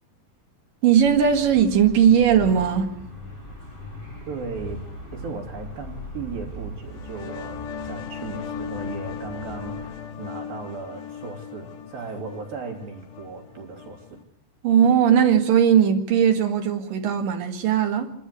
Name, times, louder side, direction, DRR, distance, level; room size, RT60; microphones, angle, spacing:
voice 1, 0.8-2.9 14.6-18.1, right 8 dB, 70° right, 3.5 m, -18 dB
sound 1, 1.0-9.9, left 1 dB, 15° left, 7.8 m, -40 dB
voice 2, 4.3-4.8 5.1-14.2, right 4 dB, 85° right, 4.9 m, -36 dB
sound 2, 6.8-14.2, left 7 dB, 70° left, 2.8 m, -37 dB
26.5 x 13.0 x 8.3 m
omnidirectional pair, 4.1 m